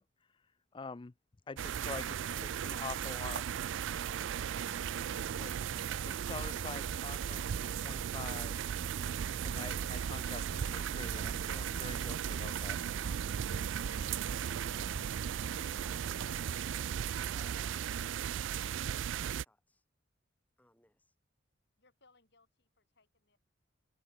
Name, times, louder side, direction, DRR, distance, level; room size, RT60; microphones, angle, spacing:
voice 1, 0.7-1.1 1.5-3.4 5.4-5.5 6.0-8.6 9.4-12.8, left 4 dB, 25° left, 0.5 m, -45 dB
sound 1, 1.6-19.4, right 8 dB, 65° right, 0.4 m, -36 dB
sound 2, 4.6-13.1, equal, 30° right, 5.7 m, -57 dB
sound 3, 10.4-16.5, left 1 dB, 80° left, 4.2 m, -56 dB
voice 2, 15.5-19.8 20.6-21.1, left 1 dB, 10° left, 3.3 m, -65 dB
voice 3, 21.8-23.4, left 3 dB, 60° left, 7.7 m, -69 dB
head